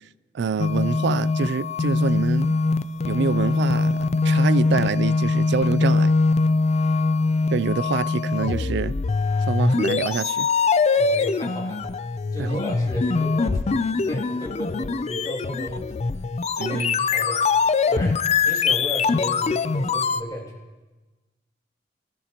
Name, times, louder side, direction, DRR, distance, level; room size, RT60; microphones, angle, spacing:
voice 1, 0.3-2.6 3.0-6.2 7.5-9.0 9.5-10.5 12.4-12.6 16.6-17.0, right 5 dB, 70° right, 0.4 m, -26 dB
sound 1, 0.6-20.2, left 4 dB, 35° left, 0.4 m, -22 dB
voice 2, 11.0-11.9 12.3-15.9 16.5-17.4 17.9-20.6, left 1 dB, 20° left, 2.8 m, -34 dB
24.0 x 13.0 x 3.0 m
head